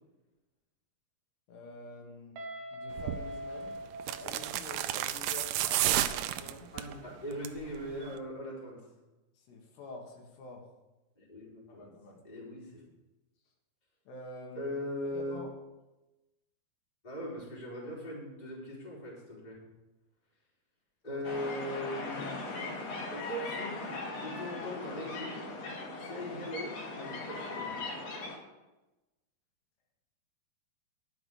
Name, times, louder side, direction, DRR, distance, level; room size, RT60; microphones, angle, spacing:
voice 1, 1.5-2.4 2.7-3.8 4.2-6.7 9.4-10.7 11.7-12.2 14.1-14.8 15.0-15.5 21.1-21.3, left 2 dB, 80° left, 0 dB, 3.6 m, -47 dB
Guitar, 2.4-5.2, equal, 70° right, 2.5 m, -43 dB
sound 1, 3.0-3.2 4.0-6.9 7.3-7.7 7.9-8.0, right 13 dB, 85° right, 2.5 m, -31 dB
voice 2, 6.7-8.8 11.1-11.9 12.2-12.8 14.5-15.4 17.0-19.6 21.0-22.6 23.1-25.4 26.0-27.8, equal, 10° left, -5 dB, 2.8 m, -40 dB
sound 2, 21.2-28.4, left 3 dB, 50° left, 2.2 m, -39 dB
11.0 x 6.0 x 6.5 m, 1.1 s
omnidirectional pair, 4.7 m